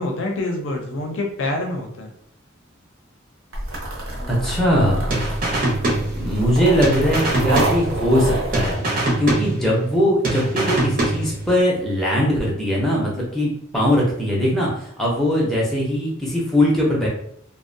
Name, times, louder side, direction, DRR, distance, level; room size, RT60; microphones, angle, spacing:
voice 1, 0.0-2.1 4.1-4.9 9.6-9.9, left 2 dB, 65° left, 2 dB, 0.5 m, -27 dB
sound 1, 3.5-8.7, right 2 dB, 75° right, 0.8 m, -27 dB
voice 2, 4.3-5.1 6.2-8.8 9.2-17.1, equal, ahead, -5 dB, 0.5 m, -20 dB
sound 2, 5.1-6.5 6.8-8.3 8.5-10.0 10.2-11.6, right 1 dB, 40° right, 0.6 m, -23 dB
2.5 x 2.1 x 2.6 m, 0.68 s
head